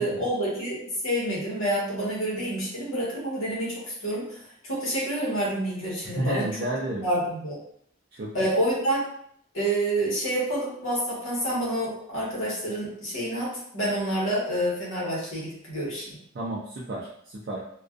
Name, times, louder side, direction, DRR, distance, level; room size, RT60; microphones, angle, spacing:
voice 1, 0.0-6.5 7.0-7.6 8.3-9.0 9.5-16.2, right 1 dB, 75° left, -5 dB, 1.0 m, -28 dB
voice 2, 6.2-7.0 8.1-8.3 16.3-17.6, right 1 dB, 50° right, -4 dB, 0.3 m, -31 dB
2.4 x 2.2 x 2.4 m, 0.66 s
head